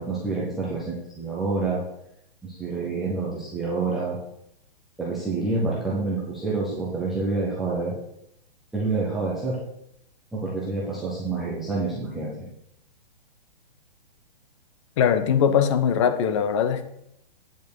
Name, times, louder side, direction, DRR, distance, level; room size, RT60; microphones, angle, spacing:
voice 1, 0.0-1.8 2.4-4.2 5.0-7.9 8.7-9.6 10.3-12.5, right 3 dB, ahead, -7 dB, 0.3 m, -28 dB
voice 2, 15.0-16.8, left 8 dB, 30° left, 11 dB, 0.8 m, -21 dB
9.1 x 5.1 x 6.2 m, 0.76 s
hypercardioid pair, 155°, 29 cm